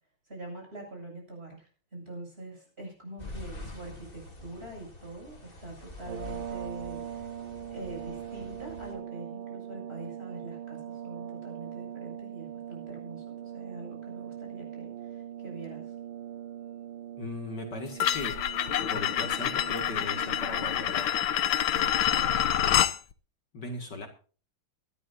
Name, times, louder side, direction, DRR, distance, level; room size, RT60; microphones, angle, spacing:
voice 1, 0.2-7.3 7.7-15.9 21.7-22.7, right 2 dB, 30° right, 1 dB, 7.6 m, -44 dB
sound 1, 3.2-8.9, left 2 dB, 25° left, 3.2 m, -46 dB
sound 2, 6.0-21.1, right 10 dB, 90° right, 1.8 m, -41 dB
voice 2, 17.2-18.4 18.9-21.1 23.5-24.1, left 2 dB, 55° left, 4 dB, 2.5 m, -38 dB
sound 3, 18.0-23.0, left 10 dB, 75° left, 1.6 m, -27 dB
22.5 x 12.0 x 2.6 m, 0.38 s
omnidirectional pair, 2.2 m